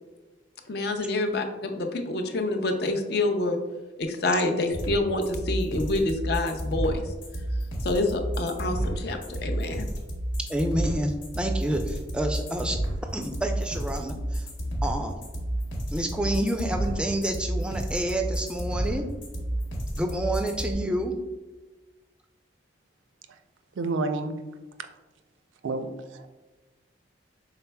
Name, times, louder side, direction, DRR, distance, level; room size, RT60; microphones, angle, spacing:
voice 1, 0.7-3.6 4.0-7.0 7.8-9.9, left 2 dB, 55° left, 5 dB, 0.5 m, -27 dB
sound 1, 4.7-20.7, right 1 dB, 90° left, 1.3 m, -30 dB
voice 2, 10.5-12.8 13.1-14.5 14.8-15.2 15.9-19.0 19.9-21.1, right 1 dB, 5° right, 4 dB, 0.3 m, -28 dB
voice 3, 23.7-24.3 25.6-26.3, right 3 dB, 80° right, 8 dB, 0.4 m, -30 dB
5.6 x 4.0 x 2.2 m, 1.2 s
head